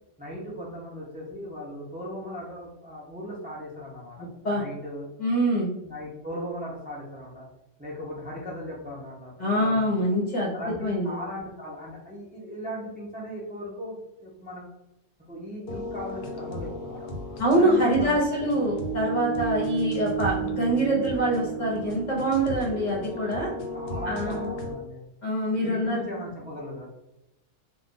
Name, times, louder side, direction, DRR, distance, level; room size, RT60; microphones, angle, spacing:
voice 1, 0.2-4.2 4.5-5.1 5.8-7.5 7.8-10.0 10.5-14.7 15.2-17.1 17.5-18.2 23.7-25.0 25.6-26.9, equal, 10° right, -5 dB, 0.4 m, -37 dB
voice 2, 4.2-4.6 5.2-5.7 9.4-10.5 10.8-11.2 17.4-23.5 24.0-24.5 25.2-26.0, right 1 dB, 35° left, -3 dB, 0.9 m, -25 dB
sound 1, 15.7-24.7, right 4 dB, 60° left, 0.6 m, -33 dB
2.5 x 2.5 x 3.6 m, 0.90 s
omnidirectional pair, 1.5 m